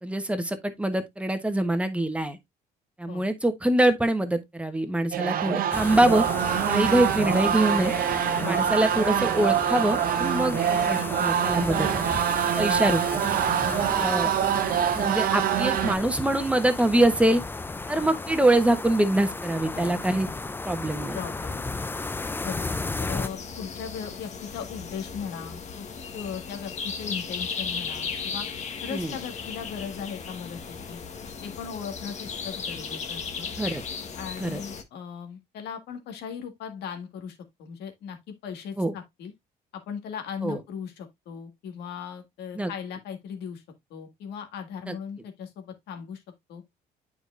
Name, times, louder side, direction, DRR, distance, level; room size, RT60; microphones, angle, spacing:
voice 1, 0.0-2.4 3.0-6.2 6.7-7.9 8.5-12.2 12.6-13.0 14.0-14.3 14.9-17.4 17.9-20.3 20.6-21.2 28.9-29.2 33.6-33.8 34.4-34.6 38.8-38.9 40.4-40.6 42.6-42.7 44.9-45.0, right 1 dB, 5° right, 1.1 m, -24 dB
sound 1, 5.1-16.0, right 10 dB, 60° right, 0.8 m, -25 dB
sound 2, 5.7-23.3, left 3 dB, 10° left, 0.4 m, -34 dB
voice 2, 8.4-8.7 10.3-11.0 11.5-11.7 12.0-12.1 12.7-12.8 13.6-14.3 18.0-18.1 19.7-19.9 21.1-21.7 22.4-25.9 26.1-28.5 28.8-31.0 31.4-33.5 34.2-39.3 39.7-43.6 43.9-46.2 46.5-46.6, left 7 dB, 75° left, 1.8 m, -38 dB
sound 3, 23.2-34.8, left 5 dB, 40° left, 1.3 m, -36 dB
9.0 x 4.9 x 2.5 m
cardioid pair, 110°, 17 cm